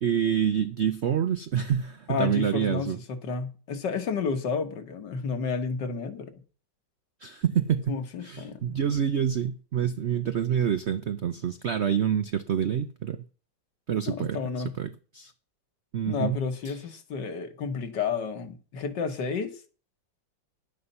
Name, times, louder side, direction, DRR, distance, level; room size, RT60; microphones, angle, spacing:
voice 1, 0.0-3.0 7.2-8.0 8.2-13.2 13.9-14.4 14.8-15.3 15.9-16.4 16.6-16.8, right 8 dB, 70° right, 0.6 m, -27 dB
voice 2, 2.1-6.4 7.9-8.7 14.1-14.7 16.1-19.6, left 5 dB, 70° left, 2.1 m, -31 dB
11.0 x 8.6 x 5.5 m
omnidirectional pair, 2.0 m